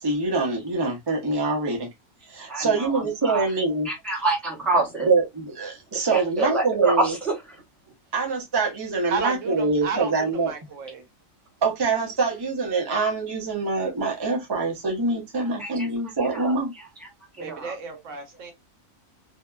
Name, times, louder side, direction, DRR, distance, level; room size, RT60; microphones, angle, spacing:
voice 1, 0.0-1.9 2.3-3.9 5.0-7.1 8.1-10.5 11.6-16.7, right 3 dB, 40° right, 0.3 m, -24 dB
voice 2, 2.5-3.4 3.9-5.1 6.1-7.1 15.6-15.9 16.3-16.5 17.0-17.1 17.4-17.7, right 3 dB, ahead, 0.8 m, -26 dB
voice 3, 9.1-11.0 17.4-18.5, right 5 dB, 70° right, 1.1 m, -32 dB
2.7 x 2.1 x 2.2 m
omnidirectional pair, 1.4 m